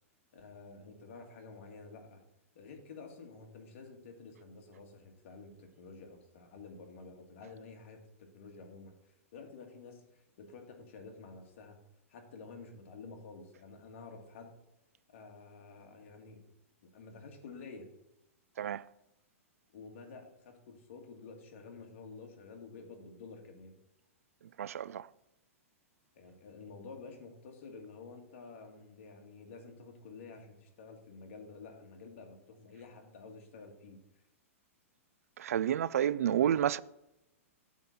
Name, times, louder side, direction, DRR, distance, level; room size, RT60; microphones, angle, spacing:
voice 1, 0.3-2.2 2.6-11.8 12.1-14.5 15.1-16.5 16.9-17.9 19.7-23.8 26.1-34.2, left 4 dB, 55° left, 1.9 m, -50 dB
voice 2, 24.6-25.1 35.4-36.8, right 10 dB, 85° right, 0.4 m, -30 dB
8.8 x 3.9 x 7.0 m
hypercardioid pair, 150°, 8 cm